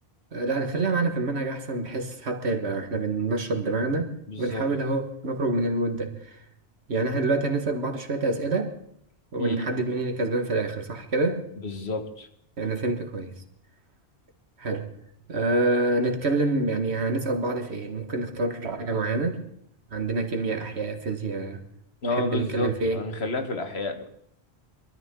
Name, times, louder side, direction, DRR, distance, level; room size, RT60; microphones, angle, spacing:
voice 1, 0.3-4.1 4.4-6.1 6.9-8.7 9.3-11.4 12.6-13.3 14.6-14.9 15.3-19.4 19.9-21.6 22.2-23.0, right 2 dB, 90° right, 1.9 m, -27 dB
voice 2, 4.3-4.7 9.4-9.7 11.6-12.3 22.0-24.0, left 2 dB, 75° left, 1.8 m, -30 dB
23.5 x 13.5 x 3.8 m
omnidirectional pair, 1.1 m